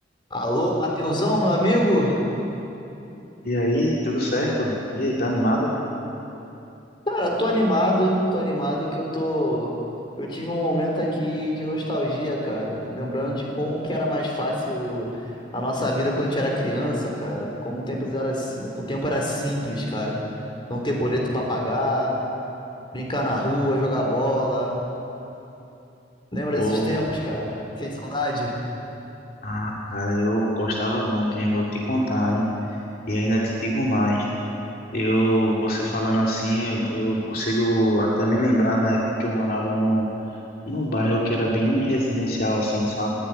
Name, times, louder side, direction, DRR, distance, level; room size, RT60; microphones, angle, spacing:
voice 1, 0.3-2.2 7.1-9.8 10.2-15.2 15.5-20.2 20.7-22.2 22.9-24.8 26.3-28.6, equal, 25° left, -1 dB, 4.0 m, -25 dB
voice 2, 3.4-5.7 26.5-26.9 29.4-32.4 33.1-34.3 34.9-40.1 40.7-43.1, equal, 55° left, -4 dB, 2.5 m, -23 dB
20.5 x 15.5 x 8.9 m, 2.9 s
head